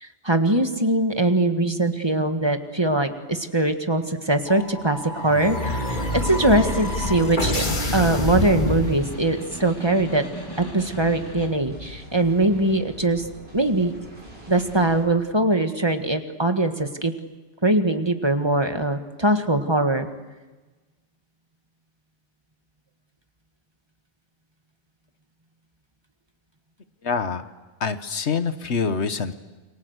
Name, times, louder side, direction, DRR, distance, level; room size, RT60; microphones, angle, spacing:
voice 1, 0.0-7.6 7.9-10.2 10.6-13.3 13.5-13.9 14.5-17.1 17.6-20.1, right 2 dB, 25° right, 7 dB, 1.7 m, -22 dB
sound 1, 4.4-9.5, left 1 dB, 45° left, 2.5 m, -27 dB
Snare drum, 5.5-11.6, equal, 20° left, 2.7 m, -39 dB
sound 2, 7.7-15.0, equal, 65° right, 8.1 m, -44 dB
voice 2, 27.0-27.4 27.8-29.3, left 5 dB, 85° left, 11 dB, 1.6 m, -25 dB
29.5 x 23.5 x 8.1 m, 1.2 s
omnidirectional pair, 1.1 m